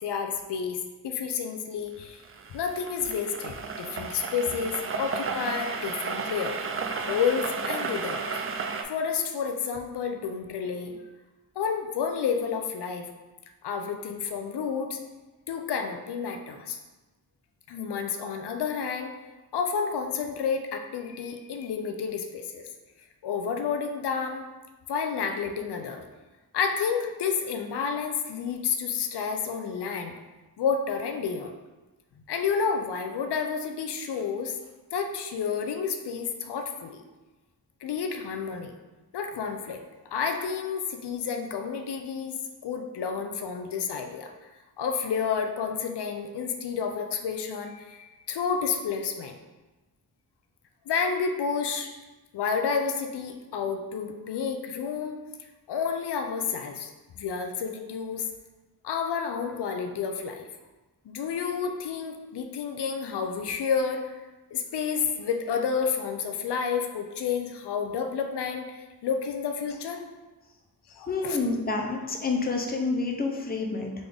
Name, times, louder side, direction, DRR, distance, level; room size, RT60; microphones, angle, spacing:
voice 1, 0.0-2.2 2.5-6.6 7.1-8.2 8.9-11.0 11.6-13.1 13.6-15.0 15.5-16.8 17.7-19.1 19.5-22.6 23.2-24.5 24.9-26.0 26.5-30.1 30.6-31.5 32.3-34.5 34.9-37.0 37.8-38.7 39.1-39.8 40.1-42.3 42.6-44.5 44.8-49.4 50.9-51.9 52.3-55.2 55.7-56.9 57.2-58.3 58.8-60.5 61.1-64.1 64.5-68.8 69.0-70.0 70.9-71.4, left 6 dB, 85° left, 5 dB, 0.5 m, -30 dB
sound 1, 2.0-8.8, right 4 dB, 35° right, 0.4 m, -33 dB
voice 2, 71.1-73.9, left 3 dB, 25° left, 2 dB, 0.6 m, -28 dB
3.8 x 3.6 x 3.4 m, 1.2 s
wide cardioid pair, 85°, 39 cm